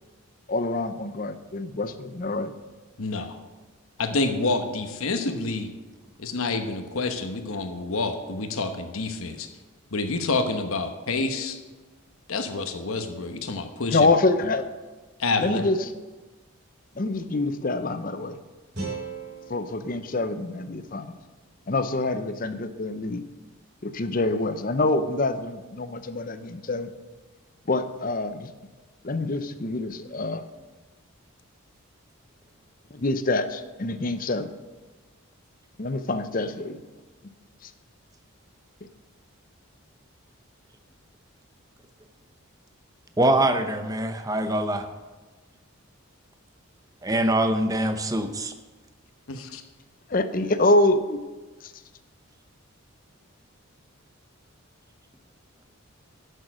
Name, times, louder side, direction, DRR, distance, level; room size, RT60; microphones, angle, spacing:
voice 1, 0.5-2.5 13.9-14.6 15.4-15.8 17.0-18.4 19.5-21.1 21.7-23.2 23.8-26.9 27.7-28.5 29.0-30.4 32.9-34.5 35.8-36.8 37.6-37.7 50.1-51.2 51.6-51.7, left 2 dB, 40° left, 11 dB, 0.6 m, -26 dB
voice 2, 3.0-3.4 4.0-5.7 6.2-9.5 9.9-11.6 12.3-14.1 15.2-15.6 49.3-49.6, left 3 dB, 70° left, 7 dB, 1.0 m, -28 dB
sound 1, 18.7-21.8, right 3 dB, 50° right, 4.1 m, -39 dB
voice 3, 43.2-44.9 47.0-48.5, right 1 dB, 15° right, 8 dB, 0.6 m, -23 dB
11.0 x 6.6 x 6.1 m, 1.3 s
head